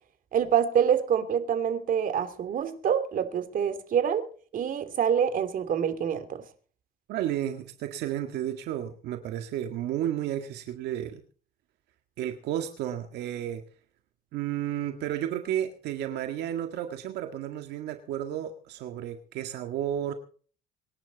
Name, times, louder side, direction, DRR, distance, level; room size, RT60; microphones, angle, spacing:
voice 1, 0.3-4.3 4.5-6.4, right 8 dB, 55° right, 2.9 m, -26 dB
voice 2, 7.1-11.2 12.2-13.6 14.3-20.1, right 11 dB, 80° right, 1.9 m, -32 dB
25.5 x 11.0 x 4.1 m
cardioid pair, 110°, 17 cm